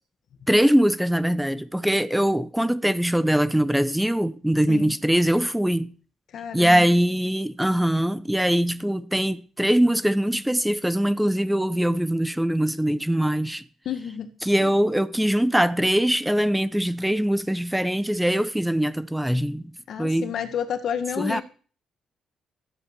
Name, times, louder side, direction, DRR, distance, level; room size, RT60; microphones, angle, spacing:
voice 1, 0.5-5.9 6.5-13.6 14.4-19.6 20.0-20.3 21.2-21.4, equal, 5° right, 0.8 m, -22 dB
voice 2, 6.3-6.9 13.9-14.3 14.6-14.7 19.9-21.4, left 8 dB, 65° left, 1.7 m, -30 dB
13.0 x 8.4 x 6.7 m
cardioid pair, 90°, 0 cm